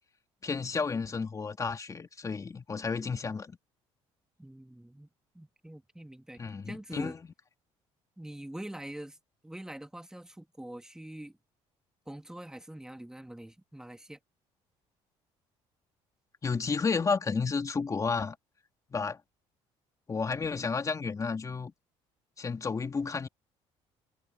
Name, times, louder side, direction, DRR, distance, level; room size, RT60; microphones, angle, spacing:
voice 1, 0.4-3.6 6.4-7.2 16.4-18.4 18.9-19.2 20.1-21.7 22.4-23.3, left 5 dB, 30° left, 2.7 m, -31 dB
voice 2, 4.4-5.1 5.3-7.2 8.2-9.2 9.4-11.4 12.1-14.2, right 1 dB, 5° right, 2.0 m, -44 dB
cardioid pair, 95°, 12 cm